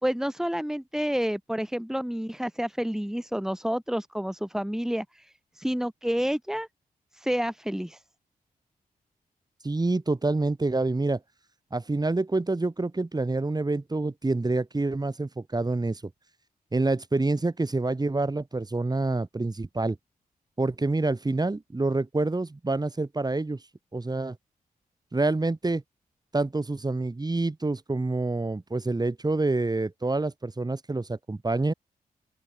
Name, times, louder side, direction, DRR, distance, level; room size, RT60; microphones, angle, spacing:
voice 1, 0.0-6.7 7.1-8.0, equal, 5° right, 4.2 m, -29 dB
voice 2, 9.6-11.2 11.7-16.0 16.7-20.0 20.6-23.6 23.9-24.4 25.1-25.8 26.3-31.7, right 2 dB, 25° right, 7.7 m, -27 dB
open air
cardioid pair, 75°, 16 cm